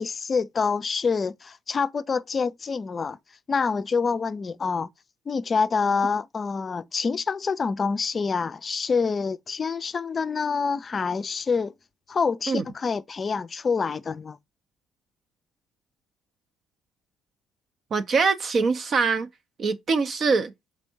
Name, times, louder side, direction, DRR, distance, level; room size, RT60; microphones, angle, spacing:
voice 1, 0.0-3.2 3.5-4.9 5.3-11.7 12.1-14.4, left 5 dB, 40° left, 0.4 m, -26 dB
voice 2, 17.9-19.3 19.6-20.5, right 4 dB, 50° right, 0.6 m, -23 dB
4.4 x 3.4 x 2.7 m
supercardioid pair, 65°, 0 cm